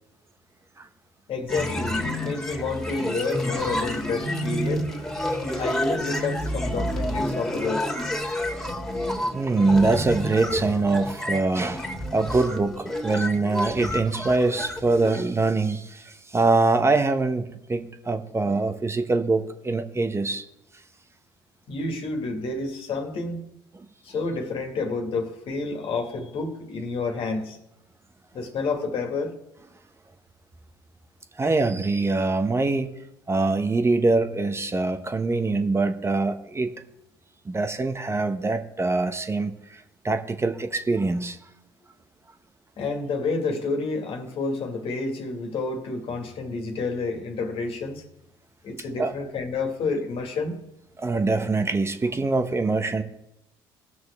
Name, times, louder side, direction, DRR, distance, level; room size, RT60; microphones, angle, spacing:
voice 1, 1.3-4.9 5.6-8.0 21.7-23.4 24.0-27.6 28.3-29.3 42.8-48.0 48.6-50.6, left 3 dB, 55° left, 2.1 m, -29 dB
sound 1, 1.5-15.2, left 1 dB, 5° left, 2.4 m, -29 dB
voice 2, 9.3-20.5 23.7-23.8 31.4-32.9 33.3-36.7 37.4-41.4 49.0-49.1 51.0-53.0, right 3 dB, 25° right, 1.0 m, -24 dB
18.5 x 6.2 x 3.5 m
hypercardioid pair, 60°, 11 cm